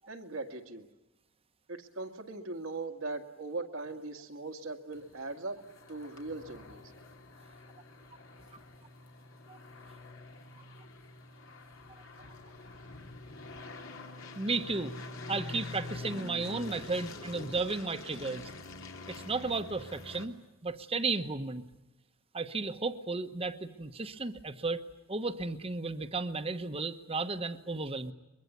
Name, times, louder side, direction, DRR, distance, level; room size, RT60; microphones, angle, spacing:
voice 1, 0.1-0.9 1.7-5.6 5.9-6.8, right 3 dB, 80° right, 5 dB, 2.0 m, -39 dB
sound 1, 4.9-20.2, left 2 dB, 75° left, 2.9 m, -46 dB
voice 2, 14.3-14.9 15.3-18.5 19.1-21.6 22.3-24.8 25.1-28.1, right 3 dB, 30° right, 10 dB, 1.1 m, -34 dB
23.5 x 22.5 x 9.5 m, 0.98 s
head